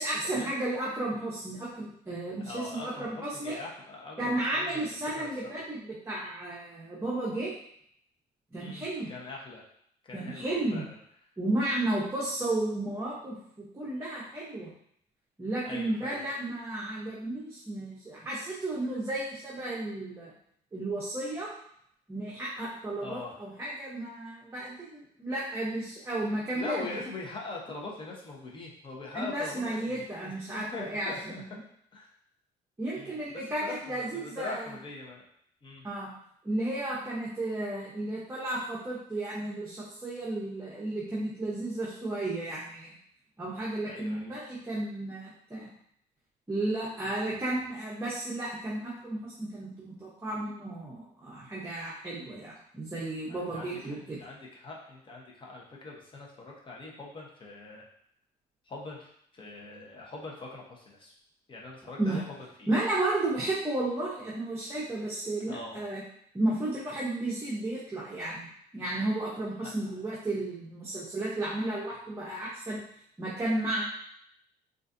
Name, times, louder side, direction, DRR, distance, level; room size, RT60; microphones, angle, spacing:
voice 1, 0.0-3.6 4.2-7.5 8.5-9.1 10.1-10.9 11.4-14.7 15.4-20.3 20.7-21.5 22.1-26.8 29.1-31.5 32.8-34.7 35.8-36.1 36.4-42.9 43.4-45.7 46.5-54.2 62.0-62.2 62.7-66.0 66.3-72.8 73.2-73.8, right 1 dB, 15° right, -7 dB, 0.8 m, -33 dB
voice 2, 2.5-5.6 8.6-9.6 10.0-11.0 15.6-16.3 23.0-23.3 26.3-31.6 31.9-32.1 33.0-35.2 35.6-35.8 43.8-44.4 47.0-47.3 53.3-53.7 54.0-57.9 58.6-61.1 61.5-62.7 65.5-65.9 69.6-69.7, left 3 dB, 30° left, -3 dB, 0.9 m, -42 dB
3.8 x 2.5 x 2.6 m, 0.69 s
cardioid pair, 110°, 17 cm